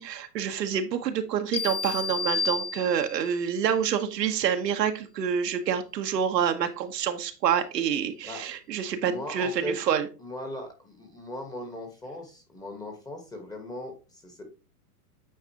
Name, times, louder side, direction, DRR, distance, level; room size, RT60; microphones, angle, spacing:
voice 1, 0.0-10.1, right 8 dB, 85° right, 6 dB, 1.1 m, -27 dB
sound 1, 1.5-3.3, left 4 dB, 30° left, 0.5 m, -31 dB
voice 2, 9.0-9.8 10.2-14.4, left 1 dB, 10° left, 4 dB, 1.2 m, -38 dB
8.8 x 4.0 x 2.8 m, 0.32 s
hypercardioid pair, 135°, 48 cm